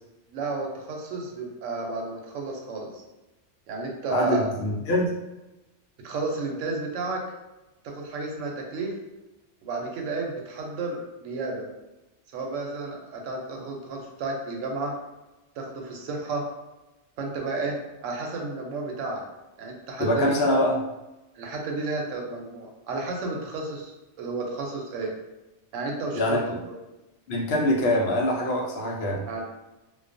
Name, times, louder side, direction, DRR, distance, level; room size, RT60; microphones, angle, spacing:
voice 1, 0.3-3.0 3.7-4.5 6.0-7.2 7.8-8.9 9.6-11.7 12.3-15.0 15.6-16.5 17.2-19.2 19.6-20.6 21.3-23.9 24.2-25.1 25.7-26.4 26.7-26.8 29.2-29.4, right 3 dB, 85° right, 0 dB, 0.9 m, -32 dB
voice 2, 4.1-5.1 20.0-20.7 26.1-26.6 27.3-29.2, left 1 dB, 65° left, 0 dB, 0.7 m, -24 dB
2.3 x 2.2 x 2.5 m, 1.0 s
omnidirectional pair, 1.2 m